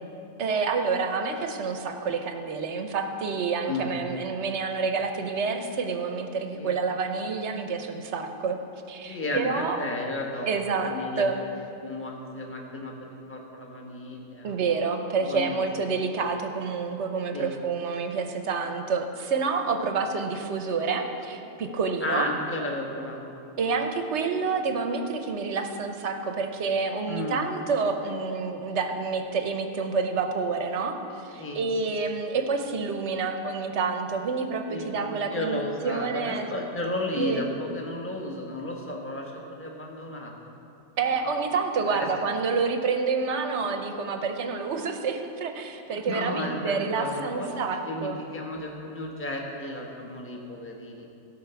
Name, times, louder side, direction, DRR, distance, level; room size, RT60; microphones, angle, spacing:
voice 1, 0.4-8.6 8.9-9.8 10.5-11.4 14.4-22.3 23.6-36.5 37.2-37.4 41.0-48.2, right 4 dB, 55° right, 6 dB, 1.0 m, -28 dB
voice 2, 3.7-4.0 4.4-4.5 6.5-6.7 9.0-11.3 11.8-14.6 15.2-15.6 17.3-17.6 22.0-23.2 23.7-23.8 27.1-27.4 31.4-31.6 34.7-40.5 41.1-41.2 41.9-42.1 46.0-51.1, left 2 dB, 10° left, -1 dB, 1.1 m, -33 dB
15.5 x 5.6 x 6.9 m, 2.8 s
omnidirectional pair, 1.6 m